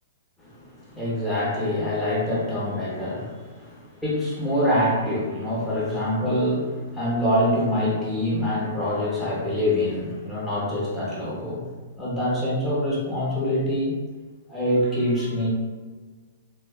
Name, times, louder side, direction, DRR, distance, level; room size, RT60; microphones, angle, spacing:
voice 1, 0.4-11.7 12.0-14.0 14.5-15.5, left 1 dB, 5° left, -8 dB, 0.8 m, -25 dB
2.5 x 2.2 x 2.3 m, 1.4 s
hypercardioid pair, 140°, 0 cm